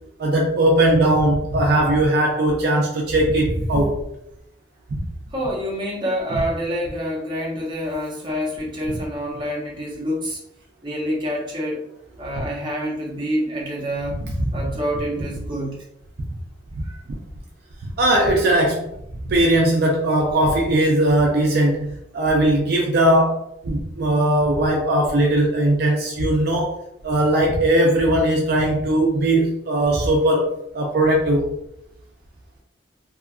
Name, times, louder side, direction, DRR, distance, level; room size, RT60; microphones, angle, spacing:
voice 1, 0.2-4.0 8.9-9.0 14.2-14.5 18.0-18.9 19.2-26.7 27.0-30.5 30.7-31.5, right 1 dB, 55° right, -1 dB, 0.4 m, -19 dB
voice 2, 5.3-10.4 10.8-11.8 12.2-14.2 14.5-15.8 16.8-17.0, equal, 25° right, -3 dB, 0.7 m, -27 dB
2.7 x 2.3 x 2.3 m, 0.77 s
head